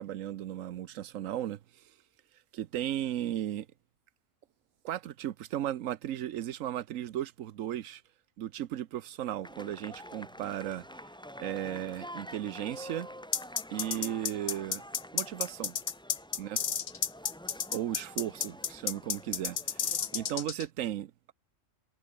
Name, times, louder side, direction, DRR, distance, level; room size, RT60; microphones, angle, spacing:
voice 1, 0.0-1.6 2.5-3.7 4.8-8.0 8.4-10.8 11.4-13.1 13.7-14.8 15.1-15.8 16.4-16.6 17.7-21.3, right 12 dB, 85° right, 1.1 m, -35 dB
sound 1, 9.4-20.4, equal, 5° left, 2.5 m, -48 dB
sound 2, 13.3-20.6, left 7 dB, 45° left, 0.9 m, -31 dB
omnidirectional pair, 1.3 m